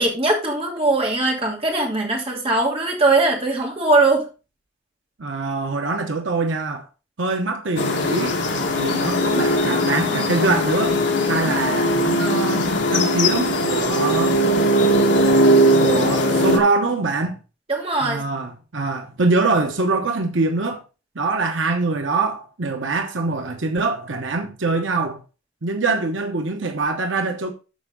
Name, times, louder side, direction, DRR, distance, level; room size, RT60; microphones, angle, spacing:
voice 1, 0.0-4.3 17.7-18.2, right 2 dB, 30° right, 2.8 m, -20 dB
voice 2, 5.2-6.9 7.2-8.4 8.8-11.0 11.3-14.4 15.8-17.4 18.0-20.8 21.1-25.2 25.6-27.5, right 3 dB, 85° right, 1.0 m, -23 dB
sound 1, 7.8-16.6, equal, 70° left, 1.9 m, -19 dB
13.5 x 4.7 x 3.8 m
head